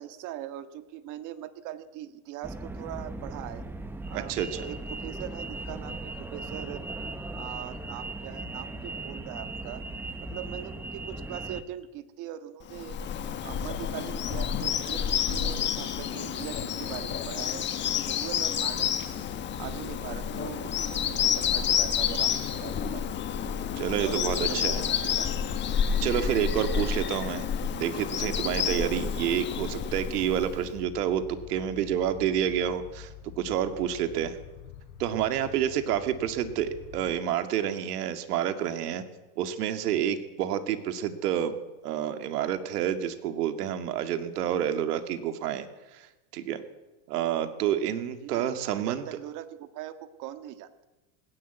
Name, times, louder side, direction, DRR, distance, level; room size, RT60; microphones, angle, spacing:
voice 1, 0.0-3.6 4.1-6.8 7.3-9.9 10.2-13.0 13.4-17.7 18.0-19.3 19.6-23.1 24.0-25.4 28.4-29.2 48.2-50.9, right 11 dB, 40° right, 10 dB, 1.7 m, -41 dB
sound 1, 2.4-11.6, right 2 dB, 5° right, 0.7 m, -38 dB
voice 2, 4.1-4.7 23.7-24.8 26.0-27.5 27.8-33.1 33.4-34.4 35.0-39.0 39.4-41.6 41.8-45.7 45.9-46.1 46.3-46.6 47.1-49.0, right 10 dB, 80° right, 8 dB, 2.4 m, -29 dB
Bird vocalization bird call bird song, 12.7-30.7, left 8 dB, 25° left, 1.4 m, -29 dB
sound 2, 19.0-37.2, left 8 dB, 65° left, 4.1 m, -47 dB
19.5 x 17.5 x 8.1 m, 1.1 s
supercardioid pair, 150°, 46 cm